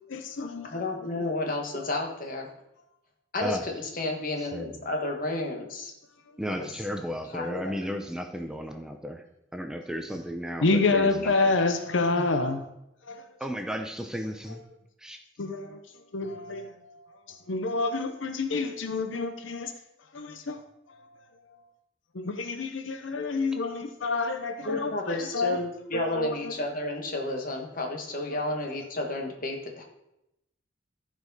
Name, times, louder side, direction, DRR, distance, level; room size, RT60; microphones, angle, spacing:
voice 1, 0.1-0.8 10.6-12.6 13.1-13.2 15.4-15.8 16.1-16.7 17.5-19.7 20.1-20.6 22.1-25.6 25.9-26.5 28.3-28.4, left 3 dB, 75° left, 8 dB, 0.8 m, -28 dB
voice 2, 0.7-2.5 3.3-5.9 6.5-6.7 7.3-7.7 24.6-29.8, left 2 dB, 45° left, 2 dB, 1.5 m, -32 dB
voice 3, 6.4-9.2 9.5-11.5 13.4-14.6 15.0-15.2, equal, 5° right, 4 dB, 0.5 m, -34 dB
14.5 x 5.0 x 4.1 m, 0.87 s
head